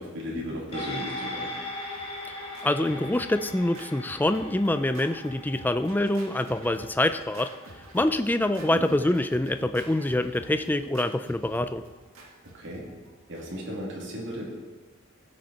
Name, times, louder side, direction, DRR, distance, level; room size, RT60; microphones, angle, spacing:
voice 1, 0.0-1.5 8.7-8.8 12.5-12.8 13.3-14.6, equal, 60° right, -4 dB, 2.6 m, -35 dB
sound 1, 0.7-9.4 9.8-9.9, left 1 dB, 30° left, 2.9 m, -40 dB
Scratching (performance technique), 1.7-13.7, right 1 dB, 85° right, 1.7 m, -49 dB
voice 2, 2.6-7.5 7.9-11.8, left 1 dB, 10° left, 10 dB, 0.3 m, -25 dB
16.0 x 6.5 x 4.3 m, 1.3 s
head